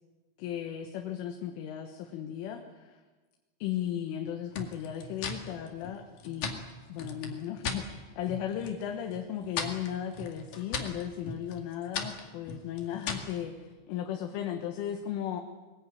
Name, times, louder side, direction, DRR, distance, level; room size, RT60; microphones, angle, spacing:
voice 1, 0.4-3.0 3.6-6.6 6.9-15.4, left 10 dB, 85° left, 4 dB, 3.9 m, -36 dB
sound 1, 4.5-7.8 8.2-8.8 9.1-13.4, left 4 dB, 55° left, 3.3 m, -38 dB
24.0 x 20.0 x 9.5 m, 1.3 s
omnidirectional pair, 5.5 m